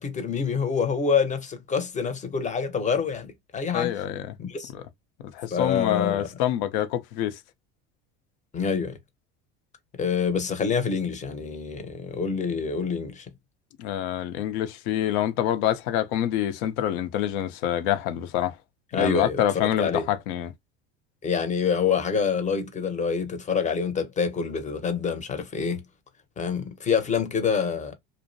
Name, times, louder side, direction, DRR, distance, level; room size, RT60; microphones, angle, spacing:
voice 1, 0.0-3.9 4.4-4.7 5.5-6.3 8.5-9.0 10.0-13.3 18.9-20.0 21.2-25.8 26.4-27.9, left 6 dB, 20° left, 0.7 m, -26 dB
voice 2, 3.7-4.4 4.7-4.8 5.2-7.4 13.8-18.6 18.9-20.5, left 11 dB, 70° left, 0.6 m, -26 dB
2.5 x 2.1 x 2.6 m
supercardioid pair, 95°, 34 cm